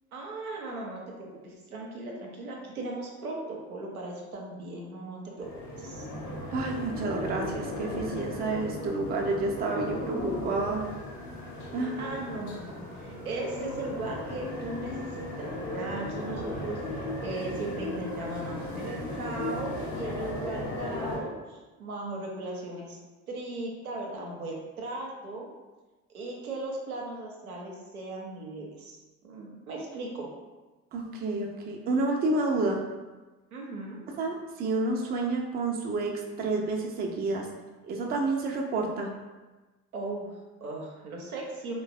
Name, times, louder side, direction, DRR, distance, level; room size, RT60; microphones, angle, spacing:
voice 1, 0.1-5.5 5.8-6.1 12.0-16.8 17.2-23.0 23.3-25.5 26.1-29.0 29.2-30.3 33.5-34.0 39.9-41.8, right 2 dB, 85° right, -1 dB, 0.5 m, -37 dB
sound 1, 5.4-21.2, left 1 dB, 60° left, 0.8 m, -36 dB
voice 2, 6.5-10.8 11.7-12.0 30.9-32.8 34.1-37.5 37.8-39.1, right 3 dB, 25° right, 1 dB, 0.4 m, -29 dB
3.1 x 2.1 x 2.4 m, 1.2 s
figure-of-eight pair, 55°, 43 cm